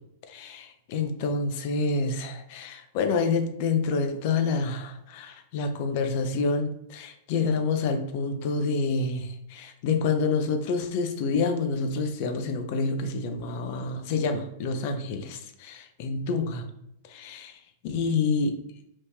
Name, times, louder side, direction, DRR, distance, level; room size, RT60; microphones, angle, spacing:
voice 1, 0.3-16.7 17.1-18.6, left 4 dB, 55° left, 6 dB, 0.5 m, -28 dB
3.1 x 2.6 x 3.4 m, 0.80 s
hypercardioid pair, 100°, 0 cm